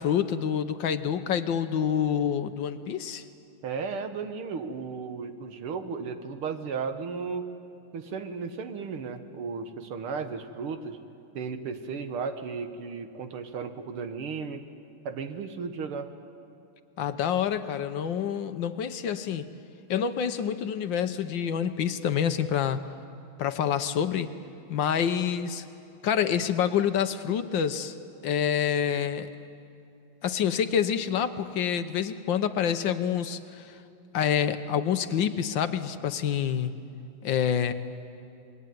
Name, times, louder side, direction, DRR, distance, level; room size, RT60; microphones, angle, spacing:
voice 1, 0.0-3.2 17.0-19.5 19.9-22.8 23.4-24.3 24.7-25.6 26.0-28.0 28.2-29.3 30.2-33.8 34.1-36.7 37.2-37.7, left 8 dB, 65° left, 10 dB, 1.5 m, -27 dB
voice 2, 3.6-7.5 7.9-11.0 11.4-14.7 15.0-16.1, right 5 dB, 85° right, 8 dB, 2.3 m, -35 dB
26.5 x 22.0 x 9.3 m, 2.6 s
omnidirectional pair, 2.4 m